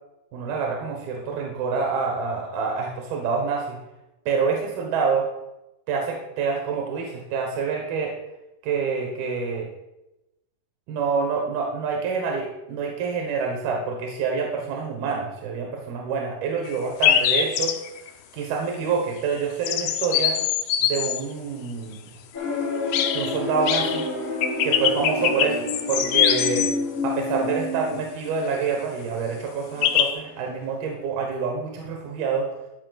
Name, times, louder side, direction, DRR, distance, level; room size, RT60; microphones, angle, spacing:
voice 1, 0.3-3.8 4.3-5.3 5.9-8.2 8.6-9.7 10.9-17.8 18.3-20.4 20.8-22.1 23.1-24.1 24.6-26.7 27.0-32.5, right 5 dB, 80° right, 1 dB, 3.0 m, -27 dB
sound 1, 16.7-16.8 17.0-18.1 19.6-21.2 22.9-23.4 23.7-24.1 24.4-26.7 29.8-30.1, left 10 dB, 85° left, 1.7 m, -23 dB
sound 2, 22.3-30.2 30.5-30.8, left 2 dB, 40° left, 3.6 m, -29 dB
12.5 x 11.5 x 2.4 m, 0.94 s
omnidirectional pair, 4.3 m